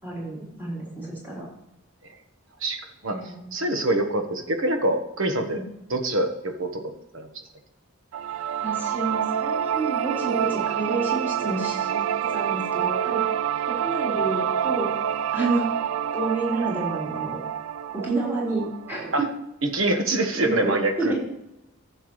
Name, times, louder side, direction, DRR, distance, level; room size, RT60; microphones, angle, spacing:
voice 1, 0.0-1.5 3.0-3.5 5.5-5.6 8.6-13.4 13.7-15.0 15.3-15.7 16.1-17.4 17.9-19.3 20.3-20.7 21.0-21.2, right 3 dB, 10° right, -6 dB, 3.7 m, -29 dB
voice 2, 2.6-3.2 3.5-5.6 5.9-7.3 19.1-19.2 19.6-21.1, right 1 dB, 70° right, 5 dB, 1.2 m, -25 dB
sound 1, 8.1-19.2, right 9 dB, 90° right, 0.4 m, -27 dB
14.5 x 6.9 x 3.1 m, 0.88 s
head